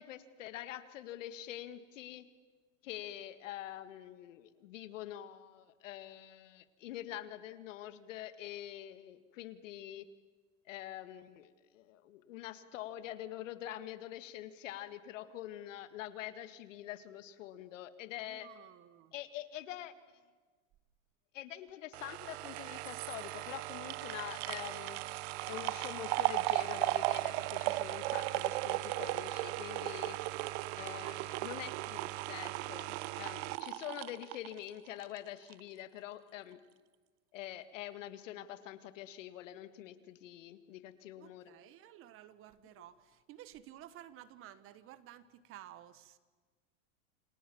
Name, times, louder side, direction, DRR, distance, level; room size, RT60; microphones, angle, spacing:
voice 1, 0.0-2.3 2.8-10.1 10.7-18.5 19.1-19.9 21.3-25.0 25.5-30.2 30.7-36.6 37.3-41.5, left 12 dB, 75° left, 12 dB, 2.0 m, -45 dB
voice 2, 18.2-19.1 41.2-46.2, right 12 dB, 35° right, 16 dB, 1.3 m, -54 dB
sound 1, 21.9-35.2 35.5-35.6, right 19 dB, 55° right, 0.9 m, -36 dB
28.5 x 27.0 x 7.1 m, 1.4 s
supercardioid pair, 135°, 38 cm